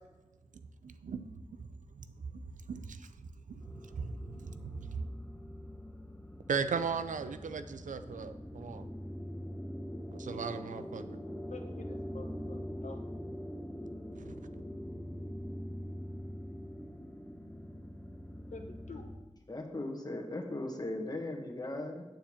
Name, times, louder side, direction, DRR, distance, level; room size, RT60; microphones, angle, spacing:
voice 1, 0.8-1.2 1.6-1.7 1.9-2.1 2.3-5.0 6.5-8.9 10.1-11.2 14.1-14.4, right 5 dB, 90° right, 11 dB, 0.5 m, -38 dB
sound 1, 3.6-19.2, equal, 10° left, 1.3 m, -43 dB
voice 2, 11.5-13.0 18.5-19.1, left 3 dB, 70° left, 4 dB, 1.1 m, -48 dB
voice 3, 19.5-22.0, left 2 dB, 30° left, 1 dB, 1.7 m, -38 dB
9.1 x 4.4 x 7.2 m, 1.2 s
cardioid pair, 45°, 13 cm